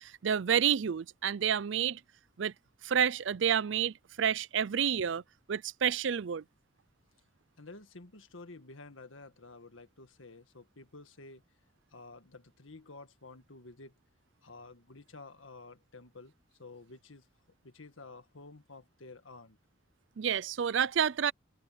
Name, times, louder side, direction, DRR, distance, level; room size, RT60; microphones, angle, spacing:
voice 1, 0.0-2.0 2.4-2.5 2.8-5.2 5.5-6.4 20.2-21.3, right 8 dB, 70° right, 0.5 m, -29 dB
voice 2, 7.6-11.4 11.9-13.9 14.4-16.3 16.6-17.3 17.6-19.6, left 3 dB, 85° left, 1.7 m, -51 dB
open air
head